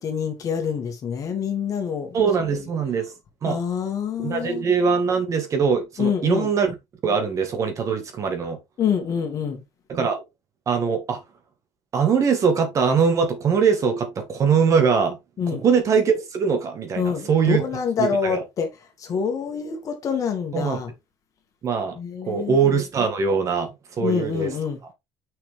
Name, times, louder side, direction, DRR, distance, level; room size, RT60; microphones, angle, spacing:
voice 1, 0.0-2.2 2.5-2.7 3.4-4.7 6.0-6.5 8.8-9.6 15.4-15.6 17.0-18.7 19.0-20.9 22.0-22.7 24.0-24.8, left 6 dB, 35° left, 2.1 m, -26 dB
voice 2, 2.1-3.1 3.4-3.6 4.2-6.7 7.0-8.6 9.9-10.2 10.7-11.2 11.9-15.2 15.6-17.6 18.0-18.4 20.5-20.8 21.6-23.7 24.0-24.5, right 6 dB, 30° right, 1.8 m, -22 dB
6.3 x 5.9 x 3.5 m
cardioid pair, 160°, 10 cm